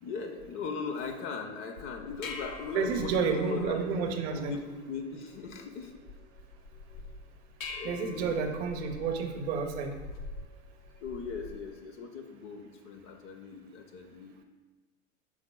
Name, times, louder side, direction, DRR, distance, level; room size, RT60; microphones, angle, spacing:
voice 1, 0.0-3.8 4.3-5.9 7.7-8.5 11.0-14.4, left 5 dB, 35° left, 5 dB, 0.4 m, -39 dB
sound 1, 1.8-11.7, left 3 dB, 80° left, 0.6 m, -46 dB
voice 2, 2.7-4.5 7.8-9.9, right 5 dB, 50° right, 5 dB, 0.7 m, -30 dB
5.9 x 3.9 x 2.2 m, 1.3 s
hypercardioid pair, 90°, 39 cm